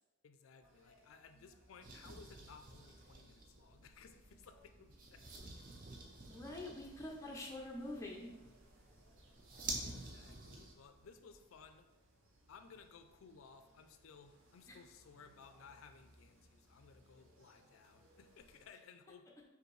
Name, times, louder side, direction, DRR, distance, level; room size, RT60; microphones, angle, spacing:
voice 1, 0.2-5.2 5.5-5.6 9.8-11.9 12.5-19.3, left 5 dB, 80° left, 8 dB, 0.4 m, -59 dB
sound 1, 0.6-18.7, right 1 dB, 70° right, 0.8 m, -68 dB
sound 2, 1.8-10.7, right 2 dB, 40° right, 0.5 m, -50 dB
voice 2, 6.3-8.3 14.7-14.8, left 1 dB, 15° left, -1 dB, 0.4 m, -45 dB
5.1 x 2.6 x 3.1 m, 1.1 s
head